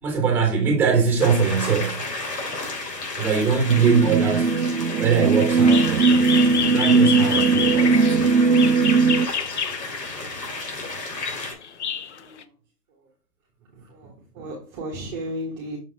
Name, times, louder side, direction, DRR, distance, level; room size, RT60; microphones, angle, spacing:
voice 1, 0.0-2.0 3.2-4.5 5.0-8.3, right 6 dB, 5° right, 2.3 m, -22 dB
sound 1, 1.2-11.5, left 2 dB, 75° left, 3.4 m, -32 dB
sound 2, 3.7-9.3, right 4 dB, 85° right, 0.6 m, -19 dB
sound 3, 5.5-10.3 11.0-12.4, left 7 dB, 45° left, 0.6 m, -28 dB
voice 2, 11.4-11.8 12.1-12.5 12.9-13.1 13.6-15.8, equal, 20° right, 1.4 m, -36 dB
6.6 x 5.6 x 2.9 m
hypercardioid pair, 145°, 49 cm